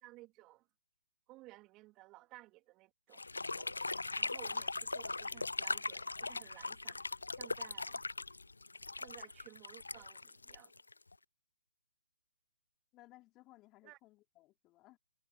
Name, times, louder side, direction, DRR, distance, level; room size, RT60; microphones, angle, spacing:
voice 1, 0.0-0.7 1.3-7.0 7.4-8.0 9.0-10.7 13.8-14.0, right 19 dB, 25° right, 3.2 m, -57 dB
sound 1, 3.1-11.1, left 3 dB, 80° left, 0.4 m, -40 dB
voice 2, 12.9-15.0, left 18 dB, 20° left, 4.0 m, -61 dB
figure-of-eight pair, 135°, 0 cm